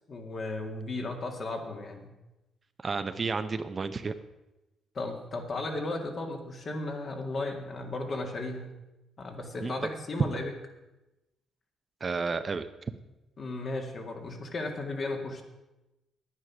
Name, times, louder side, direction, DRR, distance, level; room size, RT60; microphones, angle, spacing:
voice 1, 0.1-2.1 4.9-8.7 9.2-10.5 13.4-15.4, left 2 dB, 45° left, 3 dB, 2.0 m, -35 dB
voice 2, 2.8-4.2 9.6-9.7 12.0-12.7, right 4 dB, 35° right, 10 dB, 0.6 m, -31 dB
9.5 x 9.4 x 6.0 m, 0.99 s
cardioid pair, 90°, 0 cm